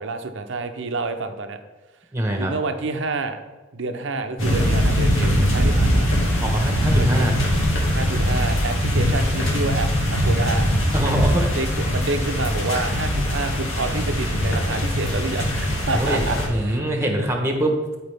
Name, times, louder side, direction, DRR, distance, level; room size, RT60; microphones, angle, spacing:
voice 1, 0.0-1.6 2.4-3.4 3.7-6.1 7.0-7.3 7.9-10.6 11.4-16.4 16.6-16.8, right 3 dB, 65° right, 7 dB, 0.7 m, -28 dB
voice 2, 2.1-2.5 6.4-7.3 10.9-11.6 15.9-17.8, right 1 dB, 15° right, 2 dB, 1.2 m, -23 dB
sound 1, 4.4-16.5, equal, 85° left, 2.0 m, -21 dB
12.0 x 4.9 x 3.5 m, 1.2 s
head